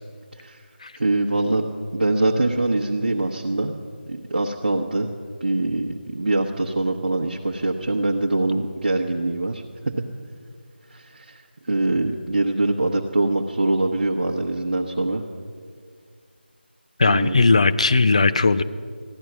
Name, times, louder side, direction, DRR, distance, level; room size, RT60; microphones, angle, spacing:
voice 1, 0.9-3.8 4.1-5.1 5.4-9.6 10.9-15.2 17.1-17.5, right 2 dB, 55° right, -1 dB, 1.1 m, -23 dB
voice 2, 17.0-18.6, left 3 dB, 35° left, 13 dB, 0.4 m, -18 dB
15.5 x 11.0 x 6.1 m, 2.1 s
figure-of-eight pair, 170°, 6 cm